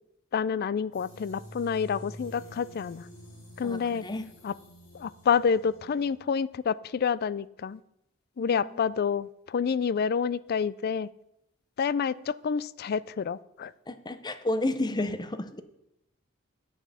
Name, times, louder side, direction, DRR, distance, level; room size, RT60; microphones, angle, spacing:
voice 1, 0.3-3.0 3.6-4.0 4.4-4.5 4.9-7.8 8.4-11.1 11.8-13.7, left 6 dB, 50° left, 19 dB, 0.4 m, -28 dB
sound 1, 0.9-6.1, equal, 65° left, 5.0 m, -48 dB
voice 2, 3.6-4.3 8.4-8.8 13.9-15.6, left 1 dB, 20° left, 11 dB, 0.7 m, -32 dB
10.5 x 7.3 x 5.6 m, 0.82 s
head